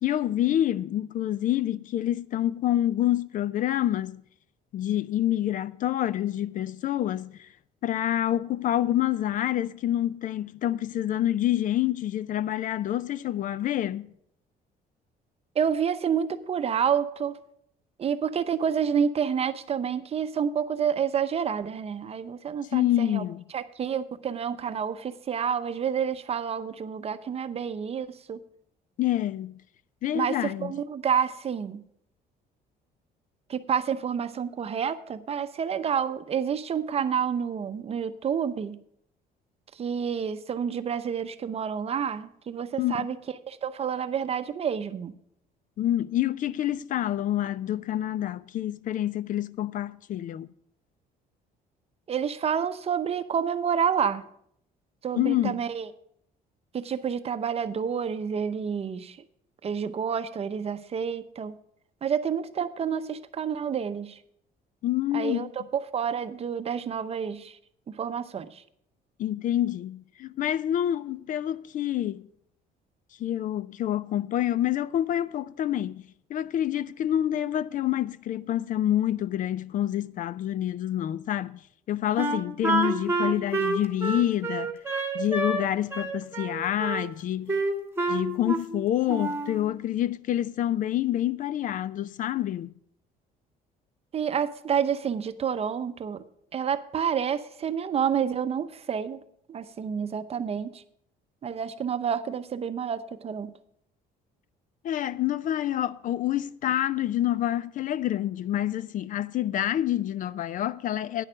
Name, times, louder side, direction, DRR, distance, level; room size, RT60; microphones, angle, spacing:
voice 1, 0.0-4.2 4.7-7.5 7.8-14.1 22.7-23.4 29.0-29.6 30.0-30.7 42.8-43.0 45.8-50.5 55.2-55.6 64.8-65.5 69.2-72.3 73.2-76.0 76.3-81.6 81.9-84.8 85.1-87.5 88.1-92.7 104.8-111.2, left 12 dB, 50° left, 0.4 m, -27 dB
voice 2, 15.5-17.4 18.0-23.2 23.5-28.4 30.1-31.8 33.5-38.8 39.7-43.2 43.5-45.2 52.1-54.3 55.0-55.9 56.7-59.2 59.6-61.5 62.0-64.2 65.1-65.5 65.7-67.6 67.9-68.6 94.1-96.2 96.5-99.2 99.5-100.8 101.4-103.5, right 7 dB, 35° right, 0.7 m, -29 dB
Wind instrument woodwind instrument, 82.2-85.6 85.9-87.0 87.5-88.8 89.1-89.6, right 2 dB, 15° right, 1.5 m, -28 dB
9.8 x 6.6 x 6.2 m
cardioid pair, 110°, 17 cm